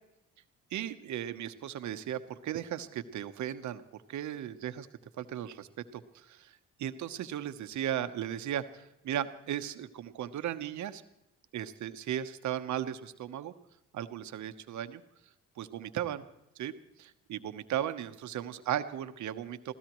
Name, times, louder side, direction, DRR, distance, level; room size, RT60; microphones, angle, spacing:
voice 1, 0.7-3.8 4.1-4.9 5.2-5.7 5.9-11.0 11.5-13.5 13.9-15.0 15.6-16.2 16.6-16.7 17.0-19.7, right 10 dB, 70° right, 10 dB, 1.0 m, -36 dB
25.0 x 16.0 x 3.1 m, 0.88 s
cardioid pair, 90°, 30 cm